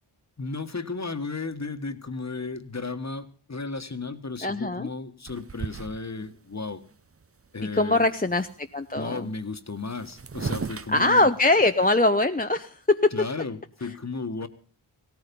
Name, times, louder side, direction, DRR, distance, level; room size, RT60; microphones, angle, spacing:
voice 1, 0.4-6.8 7.5-8.1 9.0-11.3 13.1-14.5, left 3 dB, 35° left, 9 dB, 1.5 m, -34 dB
voice 2, 4.4-4.9 7.7-9.3 10.9-13.1, left 2 dB, 20° left, 6 dB, 0.8 m, -22 dB
sound 1, 5.3-6.4 6.9-7.0 7.2-7.7 8.0-8.7 9.5-9.6 9.8-11.9, right 5 dB, 30° right, 0.7 m, -36 dB
16.5 x 14.0 x 5.3 m, 0.41 s
cardioid pair, 45°, 49 cm